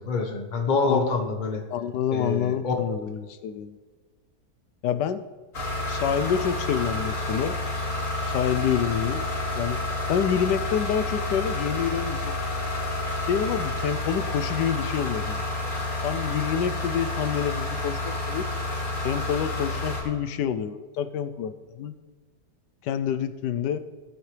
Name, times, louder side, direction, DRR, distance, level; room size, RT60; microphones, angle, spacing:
voice 1, 0.0-1.6 2.1-2.7, left 4 dB, 30° left, 4 dB, 1.1 m, -26 dB
voice 2, 1.7-3.8 4.8-5.2 5.9-7.6 8.2-9.3 9.6-9.8 10.1-12.3 13.3-15.4 16.0-18.5 19.0-22.0 22.8-23.8, left 8 dB, 80° left, 11 dB, 1.3 m, -27 dB
sound 1, 5.5-20.0, left 2 dB, 50° left, 3.2 m, -29 dB
17.0 x 9.3 x 3.3 m, 1.4 s
omnidirectional pair, 1.8 m